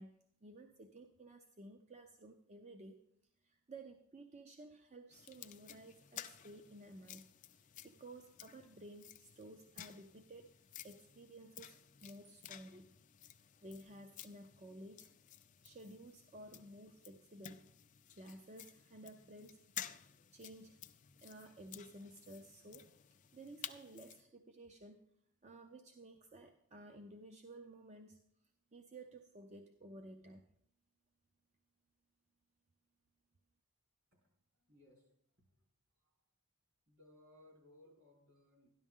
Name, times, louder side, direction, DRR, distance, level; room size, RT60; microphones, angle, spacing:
voice 1, 0.0-3.0 3.4-7.2 7.5-10.6 10.8-12.9 13.6-15.1 15.6-17.7 18.1-19.6 20.3-20.8 21.2-25.0 25.4-28.2 28.7-30.4, right 1 dB, 30° right, 5 dB, 0.5 m, -54 dB
sound 1, 5.1-24.2, left 11 dB, 35° left, 0.4 m, -54 dB
voice 2, 34.1-35.1 35.4-35.6 36.0-36.2 36.9-38.7, left 1 dB, 60° right, -1 dB, 4.2 m, -65 dB
12.5 x 11.0 x 3.6 m, 0.72 s
head